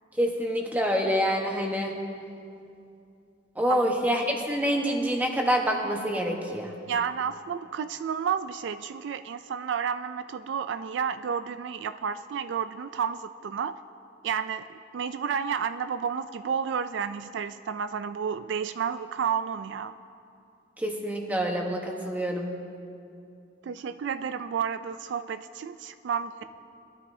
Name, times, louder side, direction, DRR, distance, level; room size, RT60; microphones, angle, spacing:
voice 1, 0.2-1.9 3.6-6.7 20.8-22.5, equal, 10° right, 0 dB, 1.1 m, -26 dB
voice 2, 6.9-13.8 14.2-19.9 23.6-26.4, right 7 dB, 70° right, 11 dB, 0.3 m, -31 dB
21.0 x 12.5 x 2.7 m, 2.6 s
head